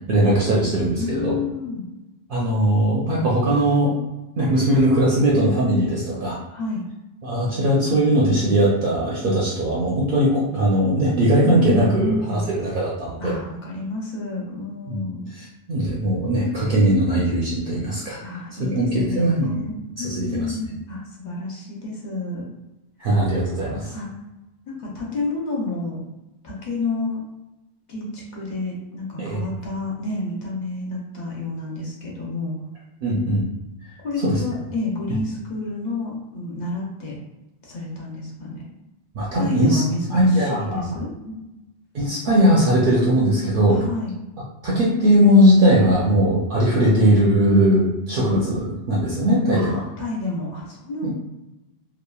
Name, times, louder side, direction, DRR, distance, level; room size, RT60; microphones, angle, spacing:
voice 1, 0.1-1.4 2.3-3.9 4.4-6.4 7.2-13.4 14.9-15.0 15.7-18.2 18.7-19.6 20.0-20.5 23.0-23.9 29.2-29.4 33.0-33.4 34.2-34.4 39.1-39.8 40.1-41.0 41.9-43.8 44.6-49.8 51.0-51.1, right 1 dB, 60° right, -5 dB, 0.7 m, -19 dB
voice 2, 0.9-1.8 6.5-6.9 11.4-12.5 13.2-15.3 18.2-22.5 23.9-24.1 24.7-26.0 26.4-27.2 27.9-32.5 34.0-37.2 37.6-38.6 39.4-41.4 43.7-44.1 49.5-51.1, left 3 dB, 45° left, -3 dB, 0.7 m, -30 dB
2.9 x 2.3 x 2.3 m, 1.0 s
omnidirectional pair, 1.1 m